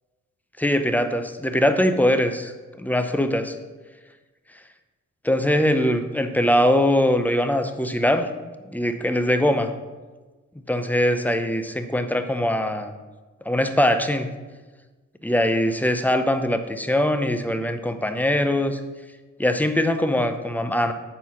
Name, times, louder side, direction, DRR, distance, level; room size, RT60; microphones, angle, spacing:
voice 1, 0.6-3.5 5.2-8.3 8.7-9.7 10.7-12.9 13.4-14.3 15.2-18.8 19.4-20.9, left 1 dB, 5° left, 8 dB, 0.7 m, -22 dB
8.6 x 4.7 x 5.8 m, 1.3 s
cardioid pair, 95°, 31 cm